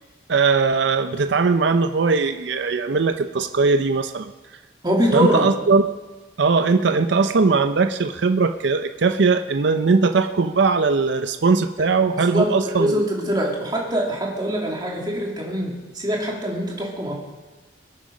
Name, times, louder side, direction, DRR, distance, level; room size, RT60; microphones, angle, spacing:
voice 1, 0.3-4.3 5.1-5.8 6.4-13.0, right 4 dB, 65° right, 9 dB, 0.5 m, -19 dB
voice 2, 4.8-5.5 11.8-11.9 12.2-17.1, equal, 20° right, -1 dB, 2.4 m, -23 dB
22.5 x 8.8 x 5.3 m, 1.2 s
head